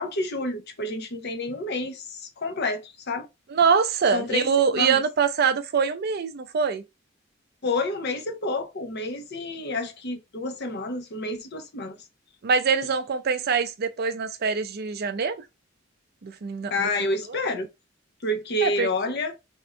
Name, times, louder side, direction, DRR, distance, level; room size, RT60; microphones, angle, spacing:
voice 1, 0.0-3.3 4.1-5.0 7.6-12.0 16.7-17.7 18.2-19.4, left 2 dB, 55° left, 0.8 m, -29 dB
voice 2, 3.5-6.8 12.4-15.4 16.2-16.7 17.3-17.4 18.6-18.9, right 6 dB, 50° right, 0.5 m, -24 dB
3.6 x 2.6 x 4.2 m
head